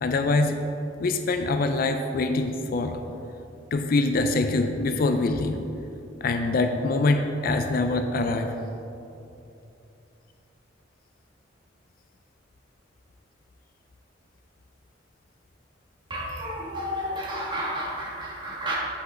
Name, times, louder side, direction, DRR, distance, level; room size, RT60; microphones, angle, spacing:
voice 1, 0.0-0.6 1.0-3.0 3.7-5.6 6.2-8.6, left 2 dB, 50° left, 6 dB, 0.4 m, -24 dB
voice 2, 16.1-18.8, equal, 25° right, -4 dB, 1.4 m, -31 dB
8.4 x 5.3 x 3.8 m, 2.8 s
head